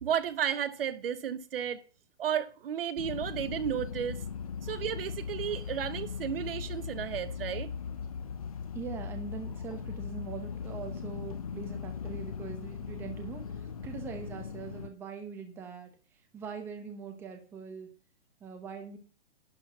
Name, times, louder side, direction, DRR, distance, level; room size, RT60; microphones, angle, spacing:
voice 1, 0.0-1.8 2.2-4.2 4.6-7.7, right 9 dB, 55° right, 1.0 m, -33 dB
sound 1, 3.0-14.9, left 6 dB, 35° left, 0.4 m, -39 dB
voice 2, 8.7-15.9 16.3-17.9 18.4-19.0, right 6 dB, 5° right, 0.8 m, -42 dB
11.5 x 4.2 x 7.0 m
hypercardioid pair, 165°, 35 cm